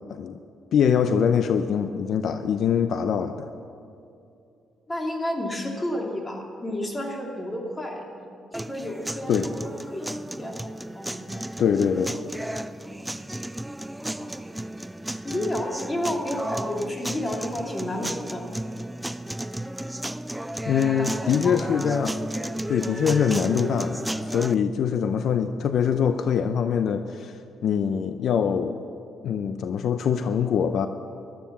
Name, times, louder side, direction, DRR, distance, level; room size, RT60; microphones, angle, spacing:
voice 1, 0.7-3.5 9.3-9.5 11.6-12.1 20.7-22.2 22.7-28.8 29.2-30.9, left 7 dB, 65° left, 9 dB, 0.6 m, -23 dB
voice 2, 4.9-10.6 10.9-11.5 12.8-13.0 14.0-14.4 15.2-18.5 20.9-21.6, left 1 dB, 20° left, 0 dB, 2.8 m, -31 dB
sound 1, 8.5-24.5, right 1 dB, 5° right, 0.4 m, -33 dB
13.5 x 13.0 x 7.3 m, 2.6 s
cardioid pair, 90°, 0 cm